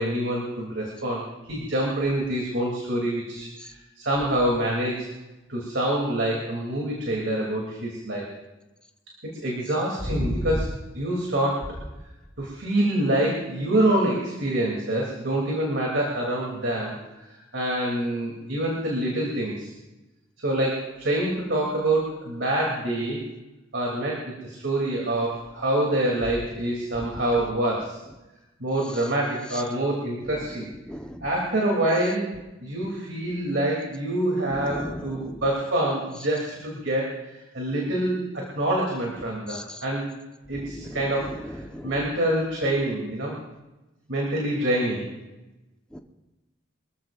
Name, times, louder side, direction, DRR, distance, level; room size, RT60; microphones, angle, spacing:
voice 1, 0.0-5.0 5.5-8.3 9.2-11.7 12.4-17.2 17.5-19.7 20.4-23.2 23.7-28.0 28.6-30.7 31.2-32.3 32.6-40.1 40.5-43.4 44.1-45.1, right 1 dB, 65° right, -3 dB, 3.2 m, -26 dB
voice 2, 10.1-10.5 30.9-31.2 34.5-35.4 39.5-39.8 40.7-40.9 41.3-41.4 41.7-41.9 45.9-46.0, equal, 5° left, 4 dB, 1.2 m, -33 dB
25.0 x 14.5 x 2.6 m, 1.0 s
head